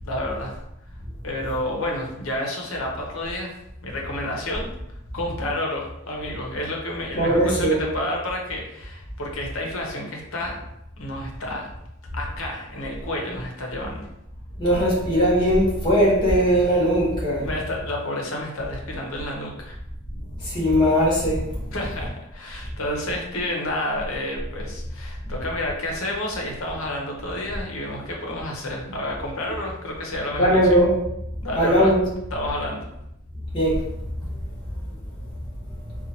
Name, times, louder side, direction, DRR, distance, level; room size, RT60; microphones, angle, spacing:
voice 1, 0.0-0.6 1.2-3.6 3.8-4.7 5.1-10.6 11.0-11.7 12.1-14.0 17.4-19.8 21.7-30.8 31.4-31.9 32.3-32.9, left 1 dB, 90° left, 0 dB, 0.8 m, -30 dB
voice 2, 7.1-7.8 14.6-17.5 20.4-22.1 30.4-30.9 31.5-32.0 33.5-33.8 34.5-34.8 35.8-36.0, equal, 25° left, -6 dB, 1.2 m, -20 dB
4.0 x 2.4 x 2.8 m, 0.84 s
head